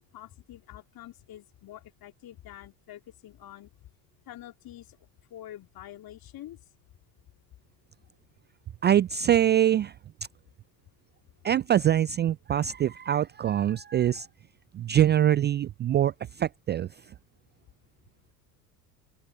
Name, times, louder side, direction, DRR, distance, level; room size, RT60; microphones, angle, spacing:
voice 1, 0.0-3.7 4.3-5.0 5.3-6.6, left 13 dB, 45° left, 3.0 m, -46 dB
voice 2, 8.8-9.9 11.4-14.3 14.7-16.9, right 11 dB, 25° right, 0.4 m, -24 dB
open air
hypercardioid pair, 65°, 49 cm